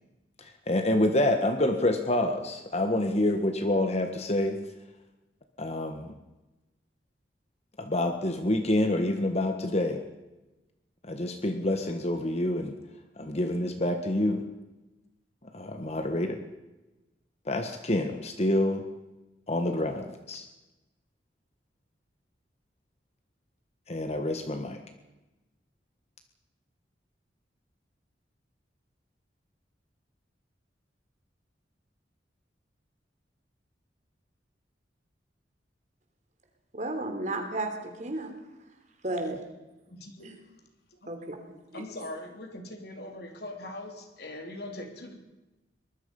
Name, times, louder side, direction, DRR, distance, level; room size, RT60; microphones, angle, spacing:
voice 1, 0.4-4.6 5.6-6.1 7.8-10.0 11.0-12.7 13.2-14.4 15.5-16.4 17.5-18.8 19.5-20.4 23.9-24.8, left 1 dB, 35° left, 6 dB, 1.5 m, -27 dB
voice 2, 36.7-38.3 39.0-39.4 40.2-40.4 41.1-41.4 41.7-41.8, right 2 dB, 45° right, 5 dB, 3.6 m, -33 dB
voice 3, 39.9-40.3 41.7-45.2, left 1 dB, 60° left, 3 dB, 3.7 m, -41 dB
23.5 x 20.5 x 5.5 m, 1.1 s
head